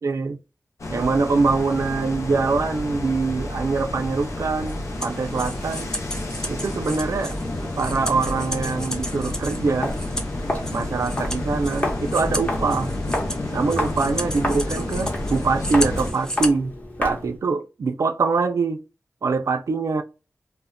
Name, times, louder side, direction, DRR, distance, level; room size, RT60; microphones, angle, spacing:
voice 1, 0.0-0.4 0.9-5.9 6.5-7.3 7.8-9.9 10.7-12.9 13.5-18.8 19.2-20.0, right 4 dB, 70° right, 0.4 m, -24 dB
sound 1, 0.8-16.1, left 2 dB, 70° left, 0.6 m, -30 dB
sound 2, 4.2-16.5, equal, 10° left, 0.5 m, -34 dB
Walk footsteps, 9.7-17.4, left 1 dB, 30° left, 0.9 m, -31 dB
2.2 x 2.1 x 3.6 m
wide cardioid pair, 100°, 5 cm